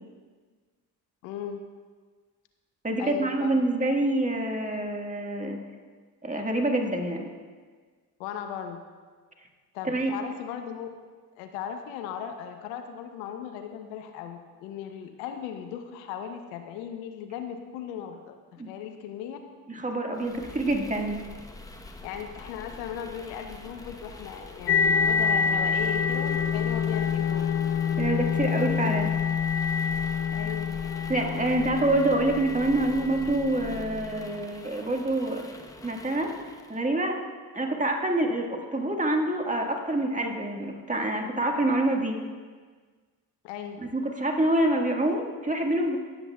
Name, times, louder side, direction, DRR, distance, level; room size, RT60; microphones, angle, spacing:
voice 1, 1.2-1.6 3.0-3.5 8.2-8.8 9.7-10.9 11.4-18.3 18.7-19.4 22.0-27.5 30.3-30.8 43.4-43.8, left 8 dB, 80° left, 6 dB, 0.9 m, -37 dB
voice 2, 2.8-5.6 6.2-7.3 9.8-10.2 18.6-18.7 19.7-21.2 28.0-29.1 31.1-35.4 35.8-36.3 36.7-37.2 37.5-42.2 43.8-46.0, right 1 dB, 15° right, 2 dB, 1.6 m, -26 dB
sound 1, 20.1-36.9, left 2 dB, 5° left, 0.9 m, -45 dB
sound 2, 24.7-34.2, left 6 dB, 30° left, 0.4 m, -27 dB
19.0 x 8.0 x 2.3 m, 1.5 s
hypercardioid pair, 50°, 50 cm